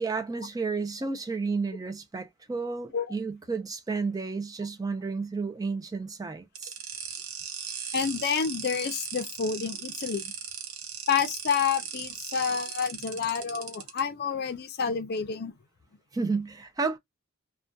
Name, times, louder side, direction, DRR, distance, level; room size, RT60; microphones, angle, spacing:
voice 1, 0.0-6.7 16.1-17.0, right 4 dB, 15° right, 0.3 m, -31 dB
sound 1, 6.6-14.0, right 7 dB, 75° right, 0.7 m, -38 dB
voice 2, 7.9-10.3 11.1-15.5, left 6 dB, 50° left, 0.4 m, -29 dB
2.6 x 2.1 x 2.2 m
head